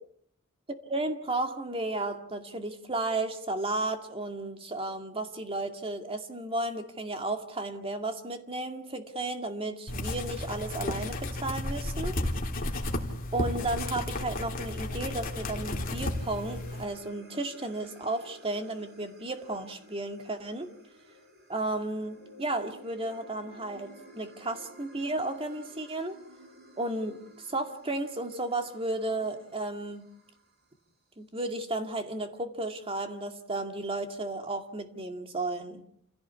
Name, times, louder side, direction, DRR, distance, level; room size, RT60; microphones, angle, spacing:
voice 1, 0.9-12.2 13.3-20.7 21.5-26.2 26.8-30.1 31.2-35.8, right 2 dB, 25° right, 6 dB, 2.2 m, -33 dB
sound 1, 9.9-16.8, left 1 dB, 40° left, 3.1 m, -33 dB
sound 2, 14.3-30.8, equal, 50° right, 7.3 m, -53 dB
28.0 x 16.5 x 8.4 m, 0.71 s
head